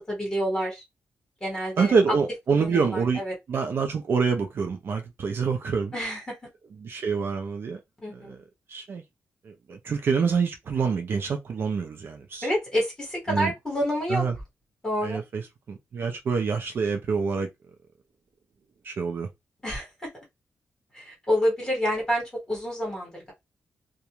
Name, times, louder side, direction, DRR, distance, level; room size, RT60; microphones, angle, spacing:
voice 1, 0.1-0.8 1.4-1.9 2.5-3.3 5.9-6.2 8.0-8.4 12.4-14.2 14.8-15.2 19.6-20.1 20.9-23.3, equal, 15° left, 1.3 m, -28 dB
voice 2, 1.8-3.2 3.5-5.9 6.8-7.8 8.1-8.4 8.7-9.0 9.4-12.5 13.3-13.5 14.1-14.4 15.0-17.5 18.8-19.3, right 5 dB, 50° right, 0.5 m, -26 dB
2.4 x 2.2 x 2.9 m
wide cardioid pair, 160°, 5 cm